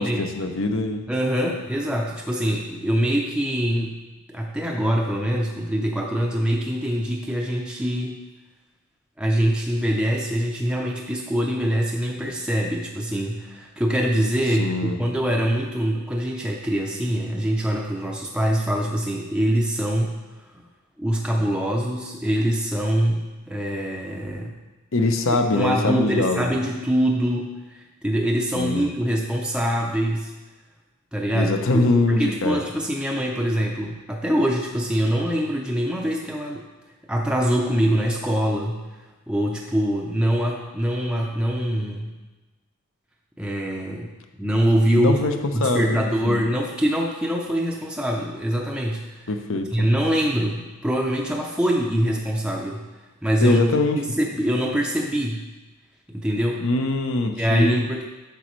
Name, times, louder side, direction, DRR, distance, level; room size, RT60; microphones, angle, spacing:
voice 1, 0.0-1.0 14.6-15.0 24.9-26.5 28.5-28.9 31.3-32.6 45.0-45.3 45.6-46.4 49.3-49.9 53.4-54.0 56.6-57.8, left 2 dB, 60° left, 6 dB, 0.7 m, -23 dB
voice 2, 1.1-4.0 4.3-8.2 9.2-20.1 21.0-24.5 25.5-30.3 31.1-36.6 37.1-38.8 39.3-42.1 43.4-44.1 44.4-45.2 45.5-49.3 49.7-52.8 53.2-53.6 54.0-55.4 56.1-56.7 57.3-58.0, equal, 5° right, -2 dB, 0.5 m, -24 dB
8.3 x 6.0 x 3.1 m, 1.1 s
head